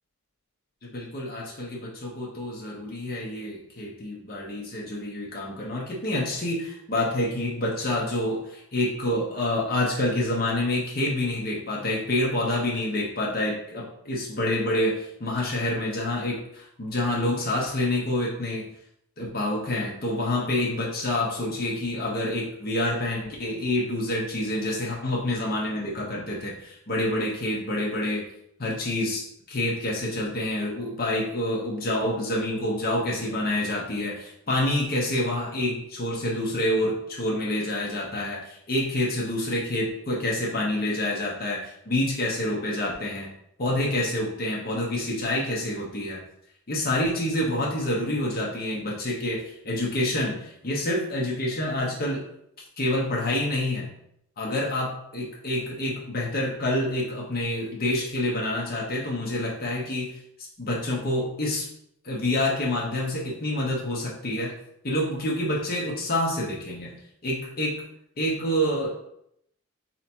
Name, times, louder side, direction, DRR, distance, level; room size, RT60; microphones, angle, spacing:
voice 1, 0.8-18.7 19.2-28.2 28.6-43.3 43.6-46.2 46.7-52.2 52.8-53.9 54.4-60.1 60.6-61.7 62.0-64.5 64.8-66.9 67.2-67.8 68.2-68.9, left 1 dB, 40° left, -3 dB, 0.7 m, -27 dB
3.3 x 2.8 x 4.3 m, 0.74 s
head